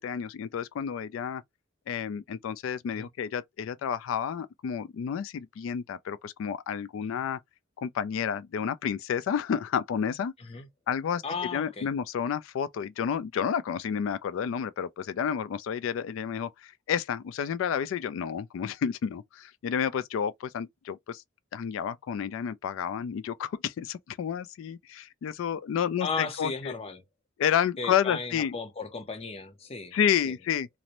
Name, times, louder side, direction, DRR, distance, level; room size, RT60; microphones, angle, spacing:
voice 1, 0.0-1.4 1.9-7.4 7.8-10.3 10.9-11.2 11.5-21.2 21.5-26.7 27.4-28.5 29.9-30.7, left 8 dB, 85° left, 0.3 m, -30 dB
voice 2, 11.2-11.9 26.0-27.0 27.8-30.0 30.2-30.3, left 4 dB, 30° left, 0.6 m, -35 dB
2.5 x 2.0 x 2.9 m
head